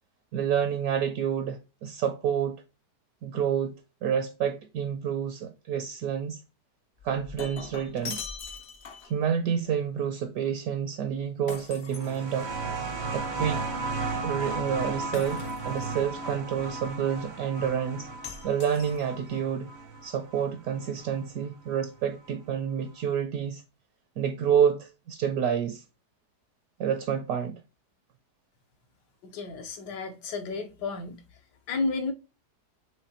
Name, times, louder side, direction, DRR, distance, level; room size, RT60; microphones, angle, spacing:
voice 1, 0.3-2.6 3.2-3.7 4.0-6.4 7.0-8.3 9.0-12.9 13.1-13.6 14.2-18.1 18.4-19.7 20.0-23.6 24.2-25.8 26.8-27.6, right 8 dB, 70° right, 0.9 m, -29 dB
Shatter, 7.0-9.2 11.5-12.8 15.1-15.9 18.2-19.3, left 5 dB, 60° left, 0.7 m, -41 dB
sound 1, 11.9-21.2 22.3-22.4, right 3 dB, 45° right, 0.6 m, -35 dB
voice 2, 29.2-31.2 31.7-32.1, left 3 dB, 75° left, 1.4 m, -32 dB
5.8 x 3.1 x 2.7 m
omnidirectional pair, 1.9 m